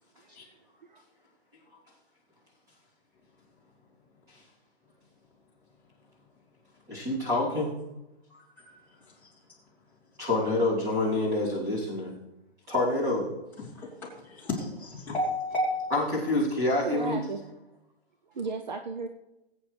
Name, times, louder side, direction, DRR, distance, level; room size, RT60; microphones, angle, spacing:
voice 1, 6.9-7.7 8.3-8.4 10.2-12.1 12.7-13.4 15.9-17.2, left 2 dB, 10° right, -8 dB, 3.0 m, -27 dB
voice 2, 13.6-13.9 14.3-15.9, left 1 dB, 5° left, -9 dB, 2.4 m, -31 dB
voice 3, 16.8-17.4 18.3-19.1, right 4 dB, 45° right, 6 dB, 0.7 m, -34 dB
20.0 x 8.7 x 3.3 m, 0.95 s
hypercardioid pair, 175°, 32 cm